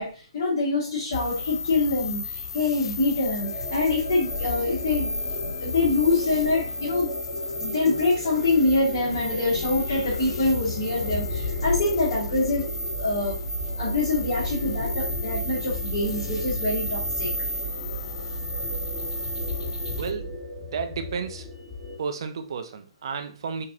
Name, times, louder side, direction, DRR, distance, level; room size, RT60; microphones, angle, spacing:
voice 1, 0.0-5.1 5.5-7.1 7.3-12.7 12.9-13.4 13.8-17.3, left 3 dB, 40° left, -10 dB, 2.0 m, -25 dB
sound 1, 1.1-20.1, left 3 dB, 60° left, 0.5 m, -33 dB
sound 2, 3.4-22.0, left 1 dB, 10° left, 1.2 m, -38 dB
sound 3, 11.1-20.4, right 5 dB, 85° right, 1.0 m, -36 dB
voice 2, 19.9-21.5 22.0-23.7, right 5 dB, 50° right, 7 dB, 0.5 m, -32 dB
4.5 x 2.8 x 2.5 m, 0.36 s
figure-of-eight pair, 125°, 3 cm